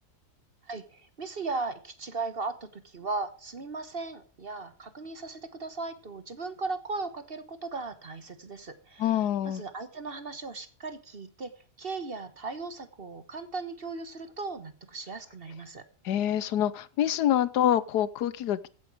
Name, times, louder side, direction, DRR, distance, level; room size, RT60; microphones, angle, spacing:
voice 1, 0.6-9.1 9.4-15.8, right 3 dB, 40° right, 1.3 m, -37 dB
voice 2, 9.0-9.6 16.0-18.7, left 11 dB, 85° left, 1.3 m, -26 dB
16.0 x 8.3 x 4.9 m
omnidirectional pair, 1.7 m